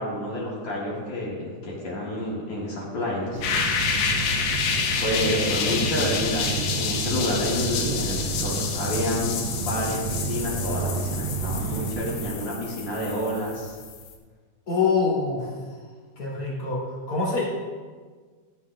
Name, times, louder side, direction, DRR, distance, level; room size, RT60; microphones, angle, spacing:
voice 1, 0.0-3.4 4.9-13.8, left 1 dB, 50° left, -5 dB, 2.8 m, -29 dB
sound 1, 3.3-12.3, right 5 dB, 90° right, 2.7 m, -31 dB
sound 2, 3.4-14.1, left 6 dB, 85° left, 2.9 m, -29 dB
voice 2, 14.7-15.5 16.2-16.8 17.1-17.4, left 4 dB, 25° left, -6 dB, 3.3 m, -24 dB
14.0 x 9.5 x 2.5 m, 1.5 s
omnidirectional pair, 4.5 m